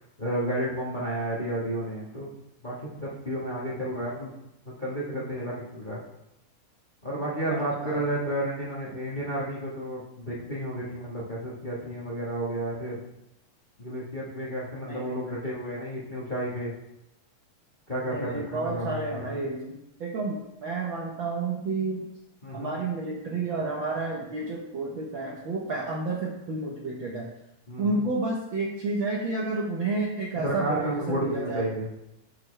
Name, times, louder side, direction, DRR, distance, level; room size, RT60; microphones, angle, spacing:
voice 1, 0.2-2.3 2.6-4.3 4.8-6.0 7.0-13.0 13.8-16.7 17.9-19.4 22.4-22.7 27.7-28.0 30.3-31.9, right 1 dB, 90° left, -6 dB, 0.4 m, -31 dB
voice 2, 7.5-8.0 14.9-15.4 18.0-22.0 22.5-27.3 27.8-31.7, right 3 dB, 80° right, -3 dB, 1.1 m, -31 dB
10.0 x 6.5 x 3.3 m, 0.88 s
omnidirectional pair, 3.8 m